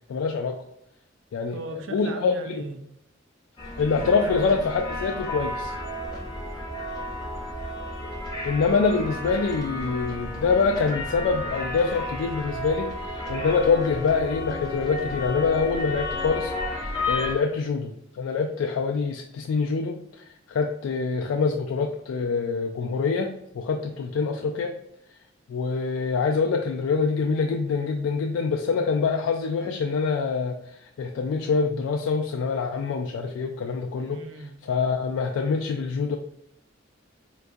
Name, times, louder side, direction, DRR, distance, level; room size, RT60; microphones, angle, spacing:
voice 1, 0.1-0.6 1.3-1.6 1.9-2.6 3.8-5.7 8.4-24.7 25.5-34.2 34.6-36.2, left 5 dB, 80° left, 0.3 m, -25 dB
voice 2, 1.5-2.9 3.9-4.6 34.1-34.6, right 3 dB, 75° right, 0.4 m, -38 dB
sound 1, 3.6-17.3, left 1 dB, 20° left, 0.6 m, -32 dB
3.8 x 2.3 x 2.5 m
head